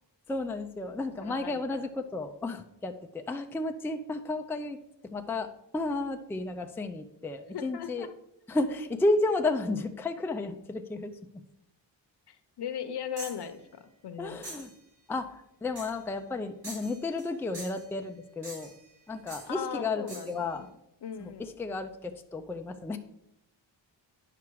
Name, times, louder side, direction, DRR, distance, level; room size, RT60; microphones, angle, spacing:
voice 1, 0.3-8.1 8.5-11.2 14.2-14.7 15.1-18.7 19.1-20.7 21.2-23.0, left 2 dB, 5° left, 5 dB, 0.4 m, -32 dB
voice 2, 1.2-1.8 7.5-8.1 12.3-14.4 19.5-20.7 21.0-21.5, left 8 dB, 60° left, 8 dB, 0.8 m, -38 dB
sound 1, 13.2-13.5 14.4-14.7 15.8-16.0 16.6-17.3 17.5-17.9 18.4-18.8 19.3-19.5 20.1-20.4, right 1 dB, 60° right, 3.7 m, -44 dB
9.6 x 5.9 x 4.6 m, 0.84 s
wide cardioid pair, 150°, 45 cm